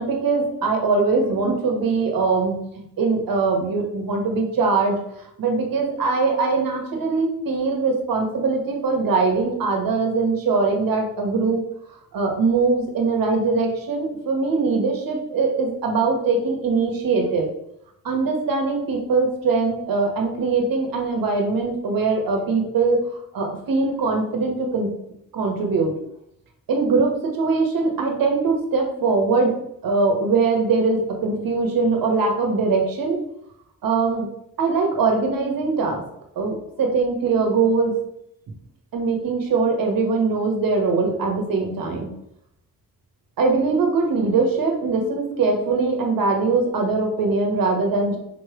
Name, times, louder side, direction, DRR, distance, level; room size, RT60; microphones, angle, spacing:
voice 1, 0.0-5.0 5.4-11.6 12.1-17.5 18.0-24.9 25.3-25.9 26.7-29.5 29.8-33.2 33.8-34.3 34.6-36.0 36.3-37.9 38.9-42.1 43.4-48.2, right 4 dB, 80° right, 2 dB, 1.6 m, -22 dB
5.8 x 3.2 x 5.1 m, 0.77 s
cardioid pair, 100°, 34 cm